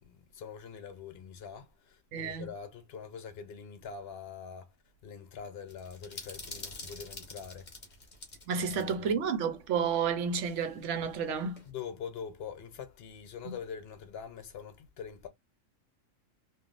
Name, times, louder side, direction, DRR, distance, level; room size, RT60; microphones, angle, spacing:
voice 1, 0.0-4.7 5.0-7.7 8.7-9.1 11.7-15.3, left 7 dB, 60° left, 0.9 m, -44 dB
voice 2, 2.1-2.5 8.5-11.6 13.5-13.6, right 6 dB, 70° right, 1.0 m, -31 dB
sound 1, 5.7-9.0 9.2-9.3 10.3-11.7, left 2 dB, 35° left, 1.3 m, -47 dB
3.2 x 2.6 x 2.4 m
omnidirectional pair, 1.3 m